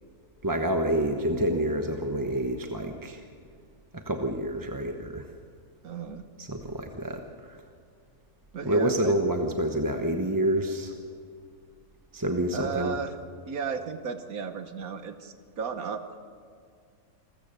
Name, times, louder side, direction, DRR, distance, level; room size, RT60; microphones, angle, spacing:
voice 1, 0.4-3.2 3.9-5.3 6.4-7.2 7.5-7.6 8.6-10.9 12.1-12.9, right 1 dB, 15° right, 4 dB, 0.9 m, -28 dB
sound 1, 1.0-4.8, left 1 dB, 85° left, 3.4 m, -51 dB
voice 2, 5.8-6.2 8.5-9.2 12.5-13.2 13.4-16.2, right 5 dB, 70° right, 9 dB, 1.5 m, -34 dB
27.0 x 14.5 x 6.8 m, 2.3 s
omnidirectional pair, 1.6 m